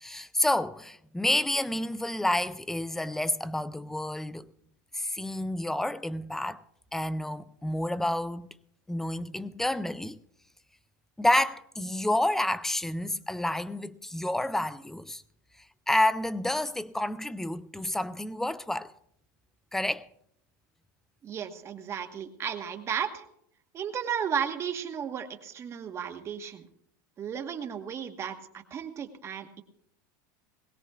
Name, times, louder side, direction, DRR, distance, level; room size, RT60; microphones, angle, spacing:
voice 1, 0.0-4.5 4.9-6.6 6.9-8.5 8.9-10.2 11.2-15.2 15.9-18.9 19.7-20.1, left 1 dB, 5° left, 0.4 m, -29 dB
voice 2, 21.2-23.2 23.7-26.6 27.2-29.6, right 8 dB, 30° right, 1.2 m, -34 dB
21.0 x 17.0 x 2.4 m
supercardioid pair, 140°, 10 cm